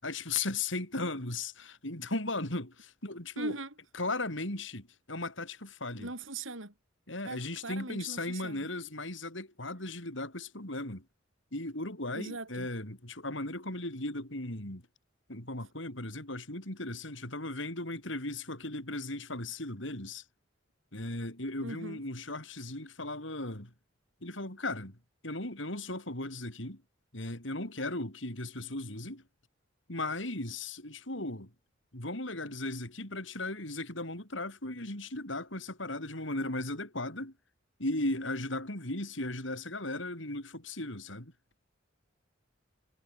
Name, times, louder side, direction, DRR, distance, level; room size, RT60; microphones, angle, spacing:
voice 1, 0.0-3.5 4.0-6.1 7.1-11.0 11.5-14.8 15.3-20.2 20.9-23.7 24.2-25.0 25.2-26.8 27.1-29.2 29.9-31.5 31.9-37.3 37.8-41.3, left 2 dB, 65° left, 7.1 m, -37 dB
voice 2, 3.4-3.7 6.0-6.7 7.2-8.7 12.1-12.7 21.6-22.0, right 2 dB, 75° right, 7.1 m, -40 dB
head